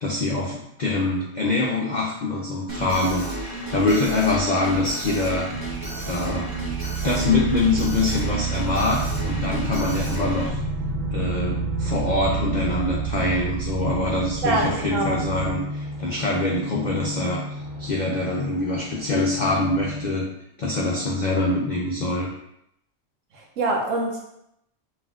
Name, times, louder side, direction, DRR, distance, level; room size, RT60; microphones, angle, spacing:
voice 1, 0.0-5.5 6.0-6.5 7.0-10.6 11.1-17.4 17.8-20.3 20.6-22.3, left 2 dB, 65° left, -3 dB, 0.4 m, -24 dB
Alarm, 2.7-10.5, right 2 dB, 25° right, 0.4 m, -33 dB
sound 1, 5.5-15.5, right 6 dB, 5° left, 1.0 m, -30 dB
sound 2, 8.9-20.1, left 1 dB, 90° right, 1.3 m, -34 dB
voice 2, 14.4-15.2 23.3-24.2, right 2 dB, 70° right, -1 dB, 1.1 m, -25 dB
5.5 x 2.5 x 2.4 m, 0.79 s
omnidirectional pair, 1.4 m